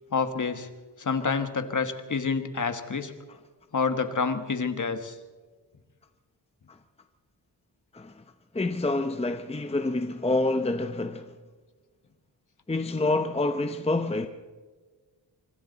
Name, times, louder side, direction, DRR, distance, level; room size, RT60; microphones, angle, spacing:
voice 1, 0.1-0.7 1.0-3.1 3.7-5.2, left 5 dB, 45° left, 1.4 m, -28 dB
voice 2, 7.9-8.2 8.5-11.3 12.7-14.3, left 2 dB, 15° left, 0.8 m, -27 dB
26.0 x 25.0 x 4.0 m
wide cardioid pair, 140°, 44 cm